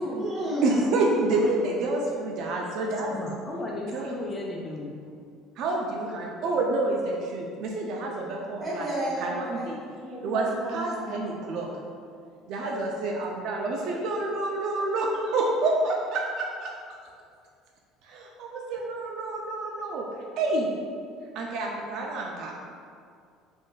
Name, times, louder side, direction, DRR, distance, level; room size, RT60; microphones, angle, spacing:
voice 1, 0.0-0.9 8.6-11.4, right 1 dB, 25° right, -6 dB, 0.9 m, -32 dB
voice 2, 0.6-3.1 3.9-4.2 5.6-8.9 9.2-9.8 10.2-11.7 12.5-16.7 18.0-20.0 20.4-20.7 21.3-21.7 21.9-22.7, right 2 dB, 55° right, -1 dB, 0.3 m, -28 dB
voice 3, 2.9-5.0, left 2 dB, 25° left, -2 dB, 0.3 m, -35 dB
3.7 x 2.5 x 2.2 m, 2.3 s
cardioid pair, 145°, 0 cm